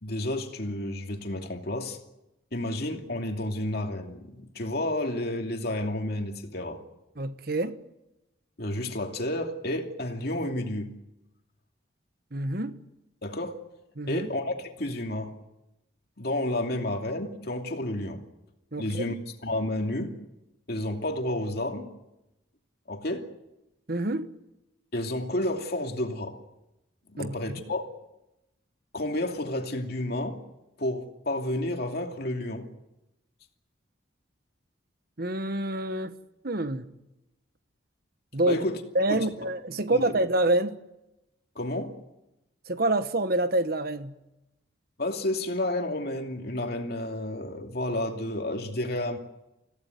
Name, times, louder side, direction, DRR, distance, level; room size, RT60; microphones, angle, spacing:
voice 1, 0.0-2.0 2.5-6.8 8.6-10.9 13.2-13.6 14.1-15.3 16.2-18.2 18.8-20.2 20.7-21.9 22.9-23.3 24.9-26.4 27.1-27.9 28.9-30.4 30.8-32.7 38.4-38.8 39.1-39.2 39.9-40.0 41.5-41.9 45.0-49.2, left 1 dB, 50° left, 2.7 m, -31 dB
voice 2, 7.2-7.8 12.3-12.8 14.0-14.3 18.7-19.2 23.9-24.3 27.2-27.6 35.2-36.1 36.4-36.9 38.3-38.6 38.9-40.8 42.7-44.2, right 2 dB, 50° right, 1.3 m, -27 dB
26.5 x 16.5 x 9.3 m
head